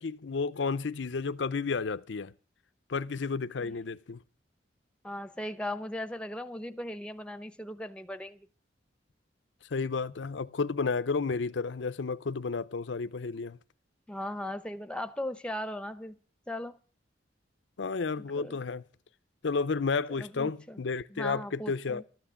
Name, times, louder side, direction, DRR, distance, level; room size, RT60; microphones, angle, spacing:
voice 1, 0.0-2.3 2.9-4.2 9.7-13.6 17.8-18.8 19.4-22.0, left 4 dB, 80° left, 0.6 m, -32 dB
voice 2, 5.0-8.5 14.1-16.2 16.5-16.8 18.2-18.6 20.2-20.8 21.1-22.0, left 1 dB, 5° left, 0.8 m, -38 dB
13.5 x 10.5 x 7.1 m
head